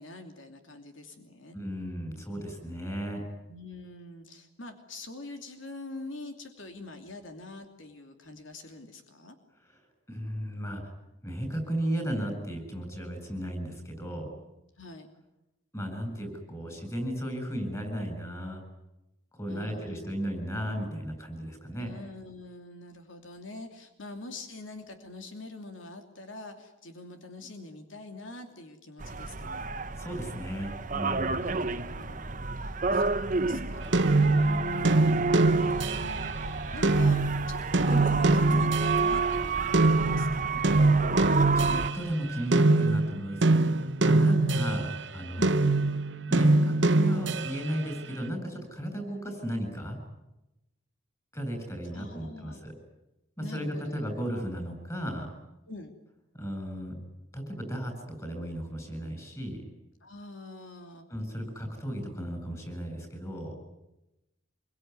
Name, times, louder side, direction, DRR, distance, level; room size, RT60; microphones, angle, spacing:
voice 1, 0.0-1.5 3.5-9.4 14.8-15.1 19.5-20.2 21.7-29.7 31.4-36.3 36.7-40.6 44.3-44.6 45.4-45.6 51.9-52.6 53.4-54.0 55.7-55.9 60.0-61.1, left 2 dB, 75° left, 5 dB, 2.8 m, -44 dB
voice 2, 1.5-3.2 10.1-10.9 11.2-14.3 15.7-18.6 19.3-21.9 30.0-31.5 41.1-45.5 46.3-50.0 51.3-52.7 53.4-55.3 56.3-56.9 57.3-59.7 61.1-63.5, equal, 15° left, 6 dB, 7.9 m, -35 dB
sound 1, 29.0-41.9, right 4 dB, 40° right, 1.1 m, -30 dB
sound 2, 33.9-39.2 39.7-45.0 45.4-47.8, right 2 dB, 65° right, 1.2 m, -24 dB
26.5 x 23.5 x 9.6 m, 0.94 s
head